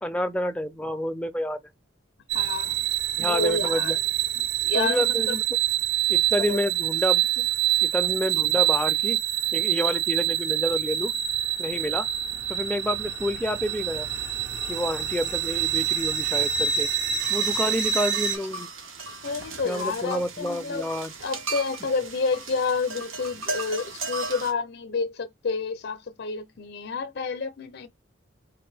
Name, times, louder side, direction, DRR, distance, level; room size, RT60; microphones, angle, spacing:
voice 1, 0.0-1.6 3.2-4.0 4.7-5.4 6.1-7.5 7.8-9.2 9.5-11.1 11.6-12.1 12.5-14.1 14.6-16.9 17.3-18.7 19.6-21.1, equal, 5° left, 0.4 m, -29 dB
voice 2, 2.3-2.8 3.2-4.0 4.6-5.3 6.4-6.6 19.2-20.9 21.2-27.9, left 4 dB, 55° left, 0.5 m, -29 dB
sound 1, 2.3-18.4, right 11 dB, 60° right, 0.6 m, -26 dB
sound 2, 17.2-24.5, right 3 dB, 85° right, 1.1 m, -37 dB
3.8 x 2.5 x 3.3 m
head